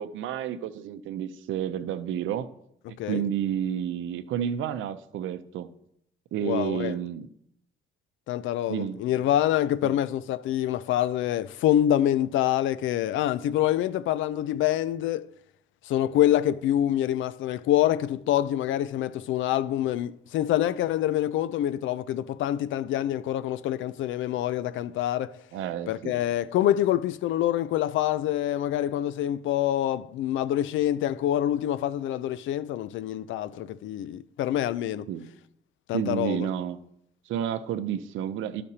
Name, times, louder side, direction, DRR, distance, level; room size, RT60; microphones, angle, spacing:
voice 1, 0.0-2.5 3.1-5.7 6.3-7.3 8.7-9.0 9.8-9.9 25.5-26.2 35.1-35.3 35.9-36.8 37.3-38.6, right 9 dB, 85° right, 0.6 m, -30 dB
voice 2, 2.9-3.3 6.4-6.9 8.3-15.3 15.8-25.4 25.9-35.1 35.9-36.5, left 12 dB, 80° left, 0.4 m, -26 dB
13.5 x 5.1 x 2.8 m
cardioid pair, 90°, 20 cm